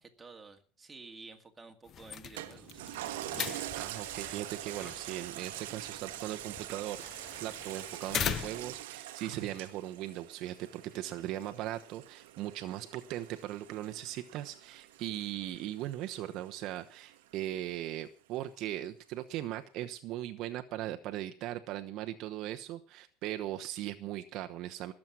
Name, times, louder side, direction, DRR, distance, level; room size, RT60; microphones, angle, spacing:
voice 1, 0.0-2.8, right 4 dB, 15° right, 4 dB, 2.2 m, -51 dB
sound 1, 1.9-8.8, left 9 dB, 40° left, 0.7 m, -41 dB
Toilet flush, 2.4-17.2 17.7-17.8, right 14 dB, 90° right, 1.3 m, -44 dB
voice 2, 3.8-24.9, right 13 dB, 55° right, 7 dB, 1.0 m, -39 dB
20.0 x 7.6 x 6.2 m, 0.41 s
supercardioid pair, 125°, 0 cm